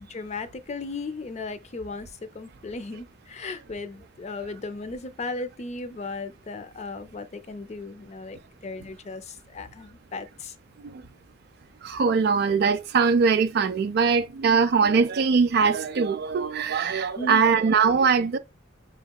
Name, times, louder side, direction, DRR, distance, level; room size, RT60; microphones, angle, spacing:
voice 1, 0.0-10.5 17.2-17.4, left 3 dB, 35° left, 0.5 m, -36 dB
voice 2, 11.8-18.4, right 5 dB, 55° right, 0.4 m, -22 dB
5.0 x 3.0 x 2.2 m
head